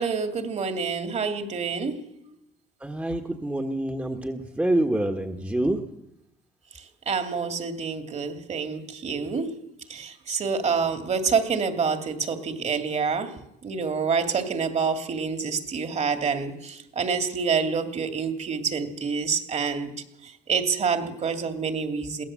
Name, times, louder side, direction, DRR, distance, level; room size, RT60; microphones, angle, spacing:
voice 1, 0.0-2.0 7.1-9.6 9.9-13.3 13.6-19.9 20.2-22.2, right 5 dB, 40° right, 7 dB, 2.5 m, -27 dB
voice 2, 2.8-5.8, right 1 dB, 10° right, 4 dB, 1.5 m, -26 dB
22.0 x 17.0 x 7.6 m, 0.86 s
cardioid pair, 110°, 17 cm